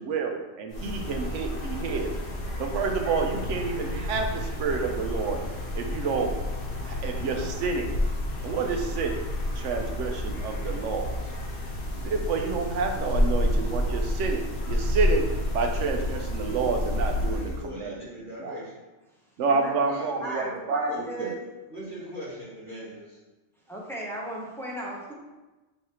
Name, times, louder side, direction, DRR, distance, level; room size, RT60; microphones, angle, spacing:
voice 1, 0.0-2.1 2.6-5.4 5.7-6.3 6.8-7.9 8.4-9.2 9.6-11.1 12.0-17.9 18.4-18.6 19.4-20.9 21.2-21.3, right 4 dB, 85° right, 3 dB, 0.9 m, -29 dB
sound 1, 0.7-17.7, left 1 dB, 60° left, 1.0 m, -30 dB
voice 2, 17.2-18.8 19.8-20.5 20.9-21.4 21.7-23.2, equal, 45° right, -9 dB, 1.7 m, -40 dB
voice 3, 20.2-21.4 23.7-25.1, right 1 dB, 5° left, -5 dB, 0.6 m, -36 dB
4.7 x 3.2 x 2.9 m, 1.1 s
omnidirectional pair, 1.2 m